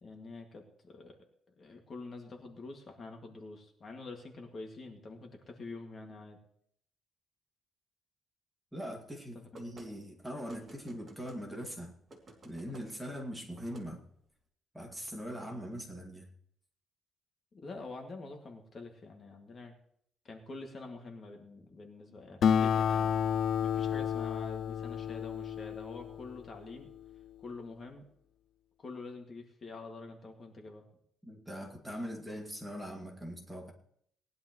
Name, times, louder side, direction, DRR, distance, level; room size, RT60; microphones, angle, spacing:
voice 1, 0.0-1.2 1.6-6.4 9.3-9.6 17.6-19.7 20.2-23.1 23.6-26.9 27.4-28.1 28.8-30.8, left 3 dB, 35° left, 2 dB, 2.1 m, -46 dB
voice 2, 8.7-11.9 12.4-14.0 14.7-16.3 31.2-33.7, equal, 5° right, 0 dB, 2.1 m, -41 dB
sound 1, 9.5-9.9 10.5-11.4 12.1-12.9 13.5-13.9, right 2 dB, 30° right, 2.6 m, -53 dB
Acoustic guitar, 22.4-27.3, left 8 dB, 55° left, 0.4 m, -31 dB
19.5 x 11.0 x 3.1 m, 0.65 s
cardioid pair, 145°, 0 cm